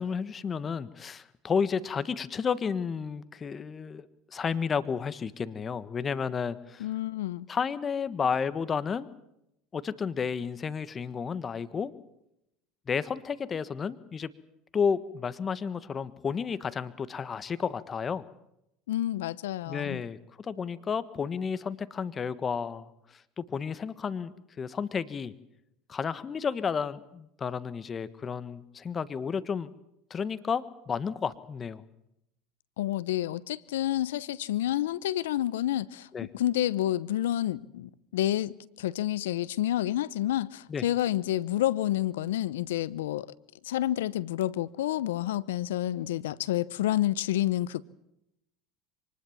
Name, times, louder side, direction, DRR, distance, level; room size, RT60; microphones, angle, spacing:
voice 1, 0.0-6.9 7.5-9.1 9.7-11.9 12.9-14.3 14.7-18.2 19.7-25.3 25.9-29.7 30.1-31.8 36.1-36.3 40.7-40.8, left 6 dB, 30° left, 1.4 m, -32 dB
voice 2, 6.8-7.5 18.9-20.0 32.8-36.1 36.3-43.3 43.6-47.8, left 13 dB, 85° left, 0.8 m, -29 dB
24.5 x 20.0 x 7.3 m
hypercardioid pair, 85°, 0 cm